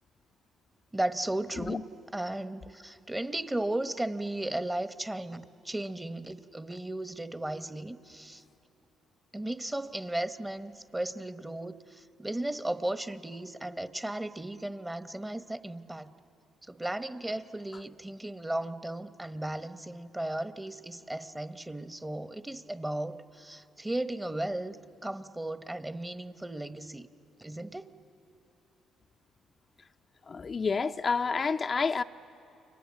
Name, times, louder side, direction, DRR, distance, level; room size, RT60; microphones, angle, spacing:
voice 1, 0.9-1.8 2.1-8.4 9.3-16.1 16.6-24.8 25.0-27.1 27.4-27.9, right 1 dB, 15° right, 1.0 m, -35 dB
voice 2, 30.3-32.0, left 5 dB, 40° left, 0.5 m, -29 dB
29.5 x 24.5 x 7.5 m
hypercardioid pair, 50°, 0 cm